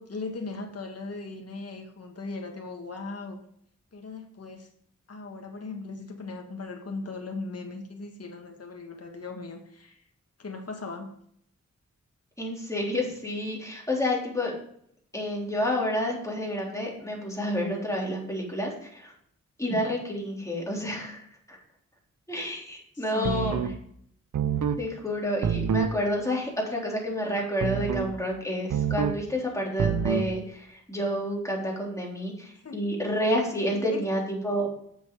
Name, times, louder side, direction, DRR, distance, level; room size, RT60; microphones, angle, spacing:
voice 1, 0.0-3.4 3.9-4.7 5.1-10.0 10.4-11.1 22.9-23.7 32.6-32.8 33.7-34.0, left 3 dB, 50° left, 3 dB, 1.6 m, -38 dB
voice 2, 12.4-14.5 15.1-19.1 19.6-21.2 21.5-21.6 22.3-23.6 24.8-34.7, equal, 10° left, -2 dB, 3.8 m, -29 dB
sound 1, 23.2-23.8 24.3-24.8 25.4-26.0 27.6-28.1 28.7-29.2 29.8-30.3, right 7 dB, 75° right, 0.7 m, -26 dB
7.3 x 7.2 x 4.9 m, 0.67 s
cardioid pair, 60°, 31 cm